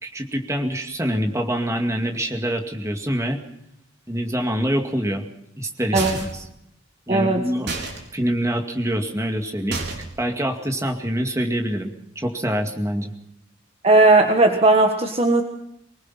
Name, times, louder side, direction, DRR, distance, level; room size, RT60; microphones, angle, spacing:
voice 1, 0.0-3.4 4.1-5.2 5.6-6.4 7.1-7.7 8.1-9.8 10.2-13.1, equal, 15° right, 3 dB, 2.2 m, -25 dB
sound 1, 6.0-6.5 7.7-8.0 9.7-10.2, right 3 dB, 55° right, 4.3 m, -29 dB
voice 2, 7.1-7.5 13.8-15.4, right 2 dB, 30° right, 4 dB, 1.4 m, -16 dB
24.0 x 21.0 x 5.8 m, 0.80 s
head